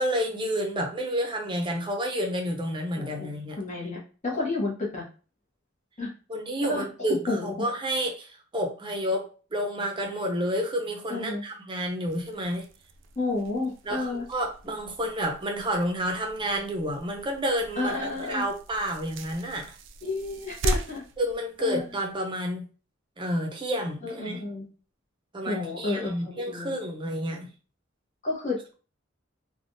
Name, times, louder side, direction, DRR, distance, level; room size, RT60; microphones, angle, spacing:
voice 1, 0.0-3.6 6.3-12.7 13.9-19.7 21.2-22.7 23.2-24.4 25.3-27.5, equal, 25° right, 2 dB, 0.6 m, -30 dB
voice 2, 3.0-3.3 3.6-5.1 6.0-6.1 6.7-6.8 7.3-7.5 11.1-11.4 13.2-14.2 17.8-18.4 20.0-21.0 21.6-21.8 24.0-24.6 25.5-26.8 28.2-28.7, left 3 dB, 40° left, -4 dB, 1.0 m, -31 dB
sound 1, 12.1-22.2, right 2 dB, 65° right, 0.4 m, -38 dB
3.4 x 2.3 x 2.6 m, 0.36 s
head